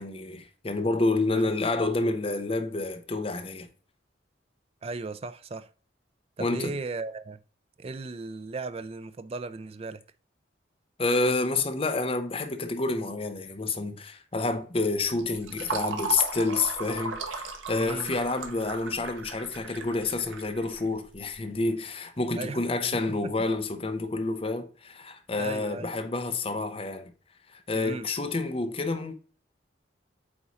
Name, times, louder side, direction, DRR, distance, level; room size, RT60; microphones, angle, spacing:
voice 1, 0.0-3.7 6.4-6.8 11.0-27.1 27.5-29.1, left 3 dB, 30° left, 0.7 m, -29 dB
voice 2, 4.8-5.7 6.4-7.4 7.8-10.0 17.7-18.2 22.4-22.6 23.1-23.3 25.4-25.9 27.7-28.1, right 3 dB, 30° right, 0.4 m, -36 dB
Fill (with liquid), 14.9-21.3, right 4 dB, 85° right, 1.1 m, -37 dB
8.6 x 3.0 x 4.1 m
head